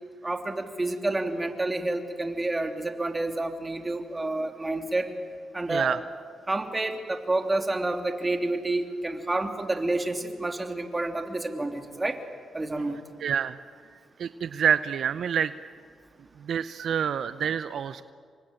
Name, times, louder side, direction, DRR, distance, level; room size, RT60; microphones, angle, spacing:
voice 1, 0.2-5.1 5.5-6.0 6.5-12.2 12.5-13.0, right 2 dB, 20° right, 5 dB, 3.0 m, -29 dB
voice 2, 5.7-6.0 13.2-13.6 14.2-15.5 16.5-18.0, right 8 dB, 70° right, 13 dB, 0.7 m, -27 dB
28.5 x 23.5 x 9.0 m, 2.1 s
cardioid pair, 80°, 0 cm